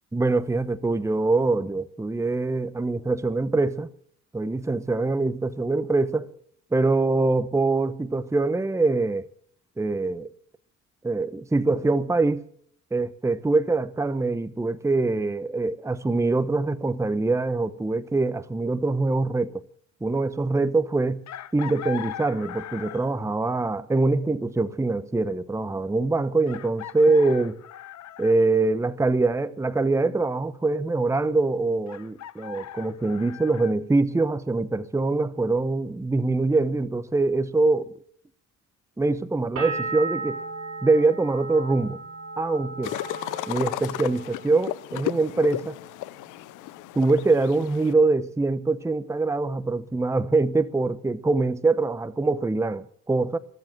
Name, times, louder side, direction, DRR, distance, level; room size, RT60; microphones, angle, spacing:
voice 1, 0.1-3.9 4.3-6.3 6.7-9.2 9.8-10.3 11.0-12.5 12.9-19.6 20.0-21.3 21.5-27.6 28.2-37.9 39.0-40.4 40.8-42.0 42.4-43.0 43.5-45.8 47.0-53.4, right 3 dB, 10° right, 0.8 m, -24 dB
Chicken rooster, 21.3-23.2 24.9-25.0 26.5-28.4 31.9-33.7, left 11 dB, 65° left, 1.0 m, -40 dB
sound 1, 39.6-45.2 45.5-46.2, right 4 dB, 50° right, 7.8 m, -36 dB
sound 2, 42.8-47.9, left 17 dB, 85° left, 0.5 m, -34 dB
21.0 x 7.7 x 7.4 m
cardioid pair, 90°, 30 cm